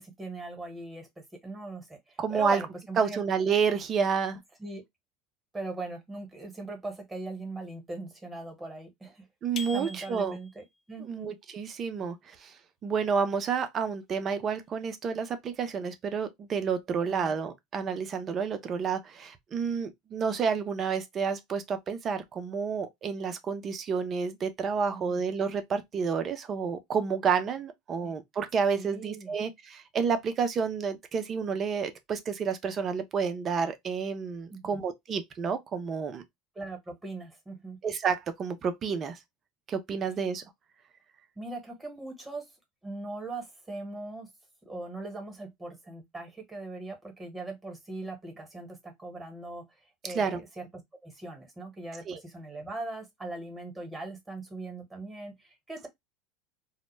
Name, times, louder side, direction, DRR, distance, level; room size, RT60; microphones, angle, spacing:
voice 1, 0.0-3.2 4.6-4.8 5.5-9.3 9.5-11.3 17.0-17.3 24.9-25.2 28.0-28.1 28.8-29.3 34.5-34.8 36.5-37.8 41.4-42.5 42.8-44.3 44.6-49.6 50.0-50.7 51.0-55.9, right 2 dB, 15° right, 1.1 m, -40 dB
voice 2, 2.2-2.6 3.0-4.4 9.4-10.4 11.1-12.5 12.8-36.2 37.8-39.2 39.7-40.4 50.1-50.4 52.1-52.2, right 6 dB, 35° right, 0.5 m, -30 dB
sound 1, 9.6-10.6, left 4 dB, 40° left, 0.3 m, -41 dB
2.1 x 2.0 x 3.1 m
hypercardioid pair, 85°, 0 cm